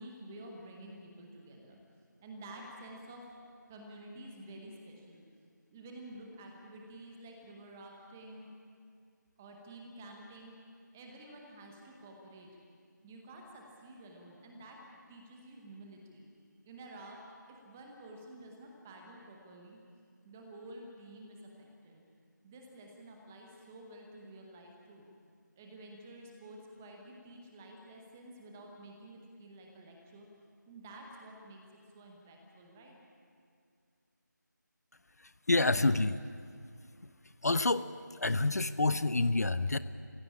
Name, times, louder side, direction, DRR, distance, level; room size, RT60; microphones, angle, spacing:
voice 1, 0.0-1.8 2.2-3.2 3.7-5.2 5.7-8.5 9.4-10.5 10.9-12.5 13.0-14.8 15.1-16.2 16.6-17.2 17.6-19.8 20.2-22.0 22.4-25.1 25.6-30.3 30.7-31.6 31.9-33.0, right 1 dB, 5° right, 1 dB, 0.9 m, -50 dB
voice 2, 35.5-36.2 37.4-37.9 38.1-39.8, left 2 dB, 55° left, 15 dB, 0.6 m, -27 dB
18.5 x 16.0 x 9.8 m, 2.3 s
figure-of-eight pair, 170°, 10 cm